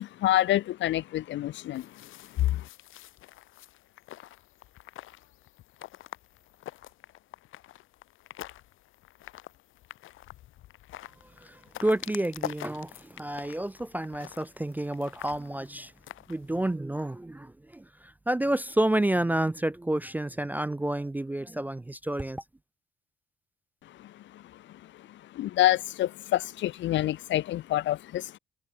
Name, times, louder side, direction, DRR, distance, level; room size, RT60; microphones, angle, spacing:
voice 1, 0.0-1.9 2.4-2.6 25.3-28.4, left 14 dB, 70° left, 0.5 m, -27 dB
sound 1, 1.7-16.7, left 15 dB, 85° left, 3.2 m, -46 dB
voice 2, 11.2-15.9 16.3-22.4, right 1 dB, 10° right, 0.3 m, -30 dB
cardioid pair, 90°, 20 cm